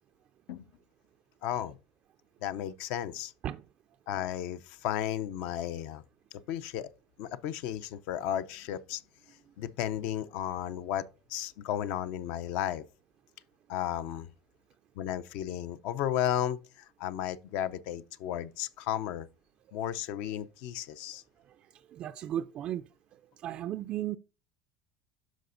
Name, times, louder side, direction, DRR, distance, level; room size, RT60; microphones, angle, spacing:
voice 1, 1.4-1.8 2.4-3.3 4.1-6.0 6.5-6.9 7.2-9.0 9.6-11.0 11.3-12.8 13.7-14.3 15.0-19.3 19.7-21.2, left 11 dB, 65° left, 0.5 m, -34 dB
voice 2, 21.9-22.9 23.4-24.2, right 11 dB, 45° right, 0.3 m, -34 dB
12.5 x 4.2 x 2.5 m
supercardioid pair, 110°, 2 cm